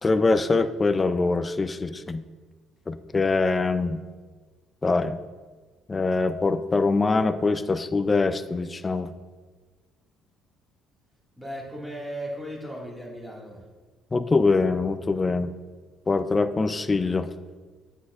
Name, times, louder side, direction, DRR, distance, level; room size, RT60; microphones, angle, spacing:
voice 1, 0.0-2.2 2.9-4.0 4.8-5.2 5.9-9.1 14.1-15.5 16.1-17.3, left 3 dB, 20° left, 11 dB, 0.3 m, -23 dB
voice 2, 11.4-13.6, equal, 5° right, -4 dB, 1.9 m, -36 dB
9.6 x 8.3 x 2.4 m, 1.4 s
cardioid pair, 120°, 0 cm